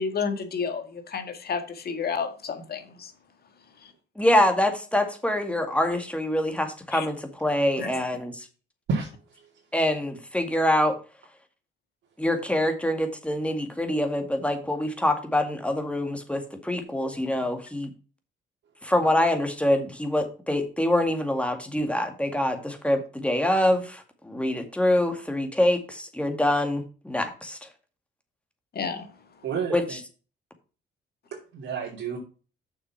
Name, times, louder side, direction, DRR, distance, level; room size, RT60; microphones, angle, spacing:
voice 1, 0.0-3.1 6.9-7.1 7.8-8.1 28.7-29.0, left 5 dB, 50° left, 1.9 m, -31 dB
voice 2, 4.2-8.3 9.7-11.0 12.2-17.9 18.9-27.6 29.7-30.0, left 1 dB, 5° left, 2.1 m, -25 dB
voice 3, 29.4-30.0 31.3-32.2, right 5 dB, 70° right, 2.7 m, -30 dB
6.9 x 6.1 x 5.8 m
cardioid pair, 90°, 20 cm